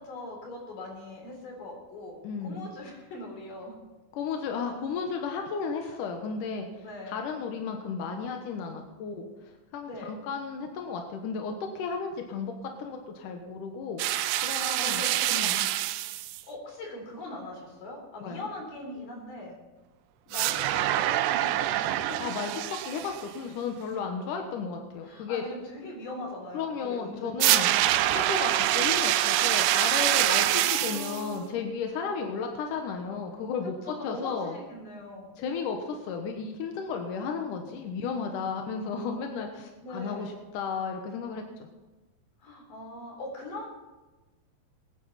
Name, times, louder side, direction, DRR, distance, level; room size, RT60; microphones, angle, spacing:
voice 1, 0.0-2.2 2.4-3.7 5.8-6.0 6.8-7.2 9.8-10.1 14.6-15.5 16.5-19.6 20.3-22.2 25.0-27.6 30.1-31.6 33.8-35.3 39.8-40.4 42.4-43.7, left 1 dB, 50° left, 0 dB, 5.3 m, -41 dB
voice 2, 2.2-2.7 4.1-14.0 14.4-15.7 18.2-18.5 22.2-22.5 22.8-25.4 26.5-27.7 28.1-34.6 35.4-41.7, left 5 dB, 70° left, 3 dB, 2.2 m, -34 dB
sound 1, 14.0-16.4 20.3-23.2 27.4-31.2, right 14 dB, 90° right, 2.8 m, -25 dB
22.5 x 10.0 x 4.2 m, 1.2 s
omnidirectional pair, 4.9 m